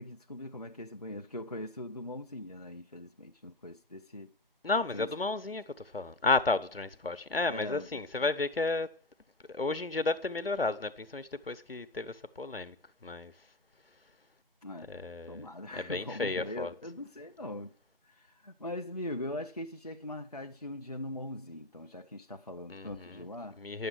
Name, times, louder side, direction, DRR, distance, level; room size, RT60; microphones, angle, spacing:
voice 1, 0.0-4.3 4.9-5.1 7.5-7.9 14.6-14.9 15.3-17.7 18.0-23.6, left 1 dB, 45° left, 0.6 m, -41 dB
voice 2, 4.6-8.9 9.5-12.7 13.0-13.3 14.9-16.7 22.7-23.2 23.6-23.9, left 3 dB, 75° left, 1.1 m, -32 dB
11.0 x 7.7 x 6.3 m
figure-of-eight pair, 175°, 29 cm